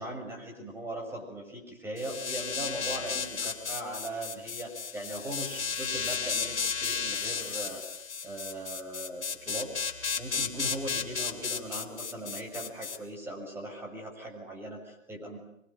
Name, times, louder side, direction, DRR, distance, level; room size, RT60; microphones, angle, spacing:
voice 1, 0.0-7.9 8.2-9.7 10.2-15.4, right 1 dB, 5° right, 0 dB, 6.8 m, -39 dB
sound 1, 2.0-13.0, left 6 dB, 60° left, 3.7 m, -34 dB
26.0 x 23.5 x 9.4 m, 0.79 s
figure-of-eight pair, 130°, 39 cm